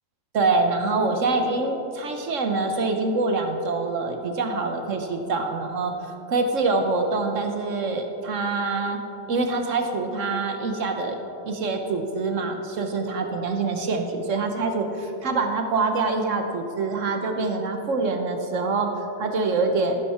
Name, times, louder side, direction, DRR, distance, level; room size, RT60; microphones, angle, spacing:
voice 1, 0.3-5.9 6.3-9.0 9.3-11.2 11.5-20.0, right 3 dB, 50° right, 5 dB, 1.2 m, -25 dB
14.5 x 11.0 x 4.3 m, 2.9 s
omnidirectional pair, 1.8 m